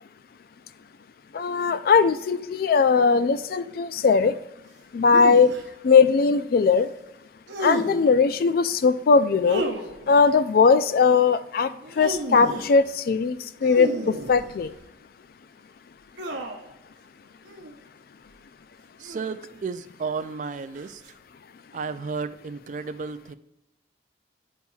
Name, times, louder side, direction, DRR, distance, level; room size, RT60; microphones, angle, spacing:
voice 1, 1.3-4.3 4.9-5.5 5.8-6.9 7.6-9.6 10.1-11.7 12.0-13.3 13.6-13.9 14.3-14.7, left 5 dB, 55° left, 13 dB, 0.3 m, -19 dB
sound 1, 5.1-5.6 7.5-8.1 9.5-10.2 11.8-12.8 13.6-14.8 16.2-16.7 17.5-17.7 19.0-19.6 20.8-21.1, right 1 dB, 75° right, 0.7 m, -33 dB
voice 2, 19.0-21.0 21.7-23.3, right 5 dB, 45° right, 12 dB, 0.3 m, -33 dB
11.0 x 4.1 x 2.3 m, 0.91 s
head